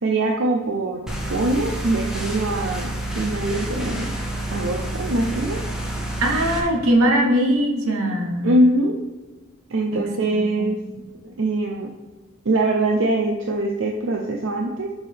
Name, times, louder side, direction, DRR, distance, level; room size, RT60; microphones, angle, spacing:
voice 1, 0.0-4.1 4.5-5.6 8.4-8.9 9.7-10.8 11.2-11.9 12.4-14.9, right 2 dB, 60° right, 1 dB, 0.6 m, -23 dB
sound 1, 1.1-6.6, right 1 dB, 5° right, 0.9 m, -28 dB
voice 2, 6.2-8.6 9.9-10.0 10.3-10.7, right 1 dB, 80° right, 2 dB, 1.2 m, -21 dB
7.0 x 5.6 x 3.5 m, 1.3 s
head